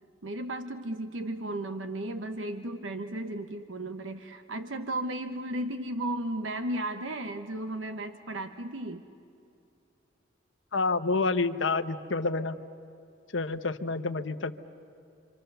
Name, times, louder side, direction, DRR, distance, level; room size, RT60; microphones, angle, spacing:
voice 1, 0.2-9.1, right 1 dB, 90° right, 8 dB, 1.0 m, -34 dB
voice 2, 10.7-12.6 13.3-14.5, left 3 dB, 80° left, 9 dB, 1.0 m, -28 dB
28.5 x 25.5 x 6.8 m, 2.6 s
head